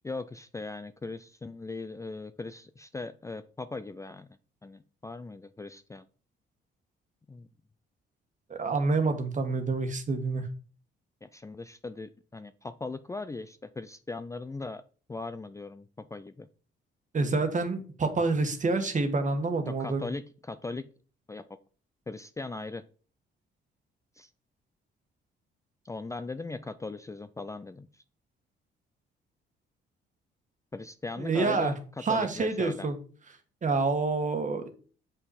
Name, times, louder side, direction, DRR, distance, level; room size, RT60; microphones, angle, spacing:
voice 1, 0.0-4.3 4.6-6.0 7.3-7.5 11.2-14.8 15.1-16.5 19.7-20.9 21.3-21.4 22.1-22.8 24.2-24.3 25.8-28.0 30.7-31.8 32.1-32.9, left 3 dB, 15° left, 12 dB, 0.4 m, -39 dB
voice 2, 8.5-10.5 17.1-20.1 31.2-31.7 32.0-32.9 33.6-34.7, right 3 dB, 40° right, 8 dB, 1.6 m, -27 dB
7.0 x 5.6 x 4.2 m, 0.39 s
cardioid pair, 90°, 20 cm